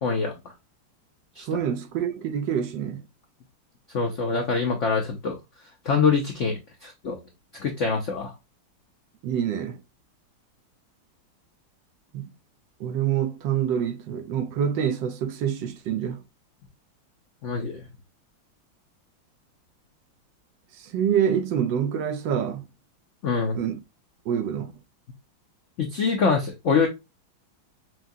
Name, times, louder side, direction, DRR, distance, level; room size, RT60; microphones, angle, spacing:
voice 1, 0.0-0.3 1.4-1.5 3.9-5.4 5.8-7.2 7.6-8.3 17.4-17.8 23.2-23.6 25.8-26.9, left 5 dB, 85° left, 0.6 m, -24 dB
voice 2, 1.4-3.0 9.2-9.8 12.1-12.3 12.8-16.2 20.7-22.6 23.5-23.8 24.3-24.7, right 8 dB, 75° right, 1.2 m, -26 dB
6.0 x 2.3 x 2.6 m
omnidirectional pair, 2.2 m